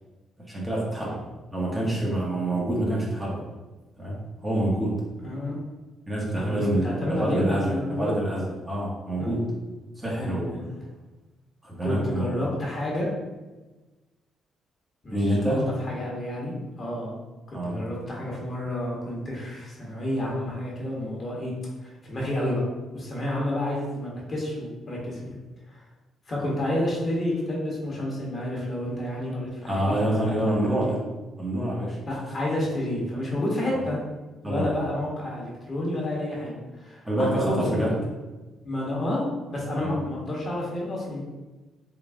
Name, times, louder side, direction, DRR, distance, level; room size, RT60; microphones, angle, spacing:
voice 1, 0.5-1.2 1.5-3.4 4.0-4.2 4.4-5.0 6.1-9.5 10.0-10.5 11.6-12.3 15.1-15.6 17.5-17.8 29.6-31.0 31.4-32.4 34.4-34.7 37.1-37.9 39.8-40.0, right 1 dB, 15° right, -4 dB, 1.0 m, -27 dB
voice 2, 1.8-2.1 5.2-5.6 6.3-8.1 9.2-9.3 10.2-10.8 11.8-13.1 15.0-17.2 17.5-21.5 21.8-22.6 22.9-25.4 25.7-25.8 26.3-30.8 32.1-34.0 34.4-37.9 38.6-41.2, left 1 dB, 40° left, -3 dB, 1.3 m, -30 dB
3.9 x 2.4 x 3.6 m, 1.2 s
cardioid pair, 90°, 0 cm